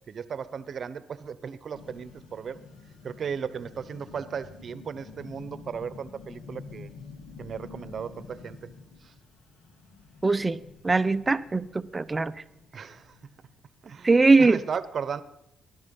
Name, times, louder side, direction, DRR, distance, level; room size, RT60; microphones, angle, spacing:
voice 1, 0.1-2.6 3.0-6.9 7.4-8.7 9.0-9.1 12.7-13.2 13.8-15.2, right 7 dB, 50° right, 15 dB, 1.0 m, -36 dB
sound 1, 1.7-13.6, left 4 dB, 70° left, 2.1 m, -48 dB
voice 2, 10.2-10.6 10.8-12.3 14.0-14.6, right 3 dB, 20° right, 14 dB, 0.6 m, -21 dB
19.0 x 12.0 x 5.4 m, 0.84 s
cardioid pair, 90°, 0 cm